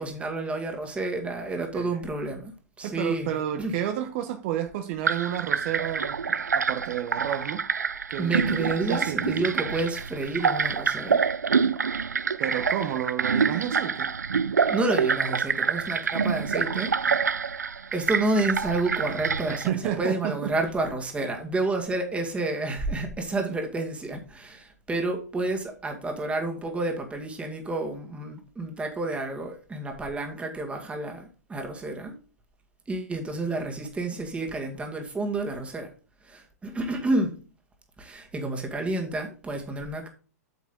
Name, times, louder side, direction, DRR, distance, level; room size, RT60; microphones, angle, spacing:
voice 1, 0.0-2.5 2.8-3.8 8.2-11.2 14.7-17.3 17.9-32.1 32.9-35.9 36.2-37.4 38.0-40.1, right 2 dB, 15° right, 2.1 m, -30 dB
voice 2, 1.6-2.0 2.8-7.6 8.1-8.4 8.9-9.2 12.4-14.1 19.5-20.5, right 10 dB, 50° right, 1.0 m, -31 dB
sound 1, 5.1-19.7, right 6 dB, 90° right, 0.4 m, -26 dB
8.4 x 7.2 x 3.8 m
hypercardioid pair, 110°, 9 cm